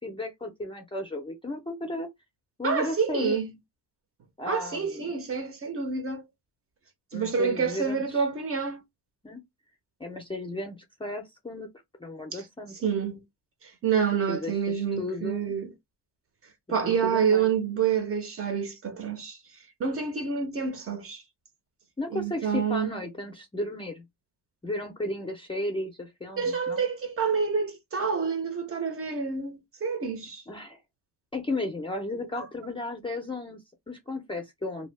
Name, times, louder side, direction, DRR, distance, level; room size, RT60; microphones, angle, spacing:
voice 1, 0.0-2.1 2.6-3.4 4.4-5.1 7.1-8.3 9.2-9.4 10.0-11.7 12.0-12.9 14.3-15.6 17.0-17.5 22.0-24.0 24.6-26.8 30.5-30.8 31.3-34.9, left 2 dB, 15° left, 0.4 m, -34 dB
voice 2, 2.6-3.5 4.5-6.2 7.1-8.8 12.3-12.4 12.8-13.2 13.6-15.7 16.7-19.4 19.8-21.2 22.1-23.0 26.4-30.4 32.4-32.5, right 6 dB, 35° right, 0.6 m, -28 dB
2.7 x 2.1 x 3.2 m
cardioid pair, 145°, 41 cm